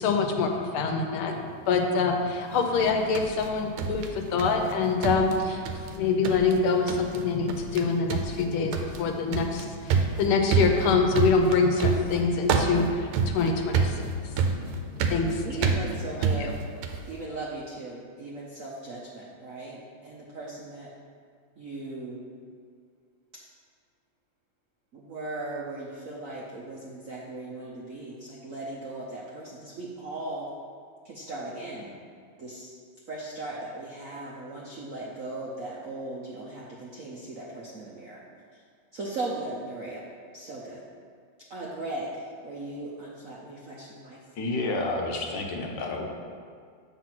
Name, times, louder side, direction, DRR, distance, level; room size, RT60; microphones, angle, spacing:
voice 1, 0.0-1.3 1.6-15.7, left 4 dB, 80° left, 4 dB, 1.6 m, -25 dB
sound 1, 2.8-4.7 5.0-6.0 6.2-6.6 6.9-7.2 7.5-7.8 8.1-17.1, right 5 dB, 85° right, 1.5 m, -28 dB
voice 2, 15.1-16.5 17.1-20.9 21.6-22.2 24.9-30.5 31.0-32.0 32.4-32.7 33.1-38.2 38.5-38.6 38.9-40.0 40.3-40.8 41.5-44.2, right 2 dB, 65° right, -5 dB, 0.8 m, -38 dB
voice 3, 44.3-46.1, left 2 dB, 65° left, 1 dB, 1.4 m, -30 dB
7.3 x 3.8 x 5.9 m, 2.1 s
omnidirectional pair, 2.3 m